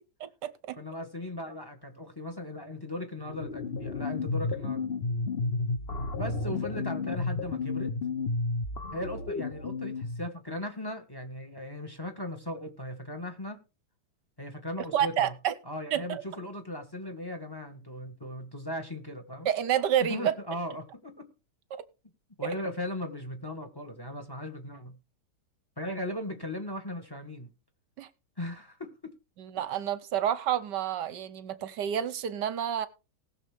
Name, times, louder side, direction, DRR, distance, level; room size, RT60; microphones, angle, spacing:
voice 1, 0.2-0.8 14.9-15.5 15.9-16.2 19.4-20.3 28.0-28.1 29.4-32.9, right 10 dB, 65° right, 1.2 m, -29 dB
voice 2, 0.8-4.9 6.1-7.9 8.9-13.6 14.4-15.3 15.6-19.5 20.0-21.3 22.4-24.9 25.8-27.5 28.4-29.1, left 1 dB, 15° left, 1.3 m, -38 dB
sound 1, 3.2-10.3, left 3 dB, 45° left, 0.7 m, -32 dB
19.0 x 6.7 x 3.5 m
omnidirectional pair, 2.3 m